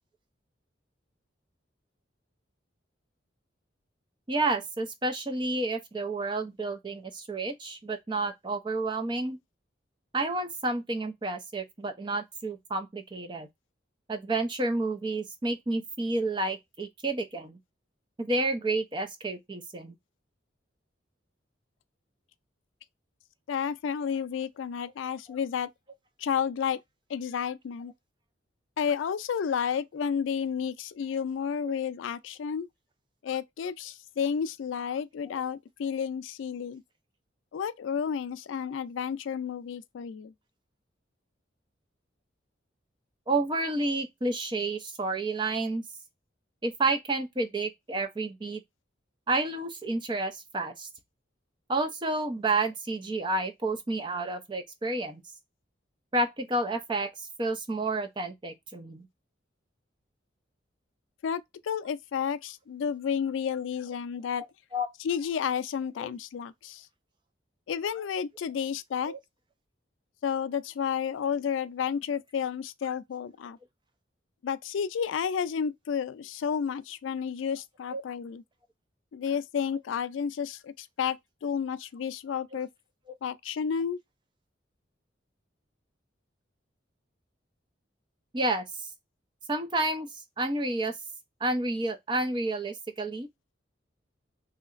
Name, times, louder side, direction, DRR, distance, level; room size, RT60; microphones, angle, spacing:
voice 1, 4.3-9.4 10.1-13.5 14.1-17.6 18.2-19.9 43.3-45.8 46.6-48.6 49.3-50.9 51.7-55.2 56.1-57.1 57.4-59.1 64.7-64.9 66.0-66.1 69.0-69.2 77.9-78.0 88.3-88.6 89.5-90.1 90.4-90.9 91.4-93.3, right 2 dB, 25° right, 0.5 m, -30 dB
voice 2, 23.5-25.7 26.2-26.8 27.1-27.9 28.8-32.7 33.2-36.8 37.5-40.3 61.2-64.4 65.0-66.9 67.7-69.1 70.2-73.6 74.4-78.4 79.1-81.2 81.4-82.7 83.2-84.0, left 7 dB, 85° left, 0.3 m, -31 dB
3.1 x 2.8 x 2.4 m
head